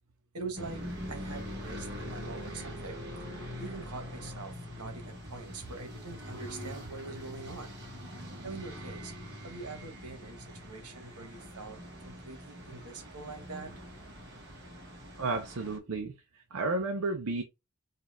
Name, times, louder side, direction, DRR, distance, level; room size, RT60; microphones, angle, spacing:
voice 1, 0.3-3.0 3.6-7.7 8.4-13.8, right 3 dB, 85° right, 1.3 m, -44 dB
sound 1, 0.5-15.8, equal, 50° right, 1.5 m, -43 dB
voice 2, 15.2-16.1 16.5-17.4, right 3 dB, 70° right, 0.6 m, -32 dB
4.4 x 2.4 x 3.5 m
head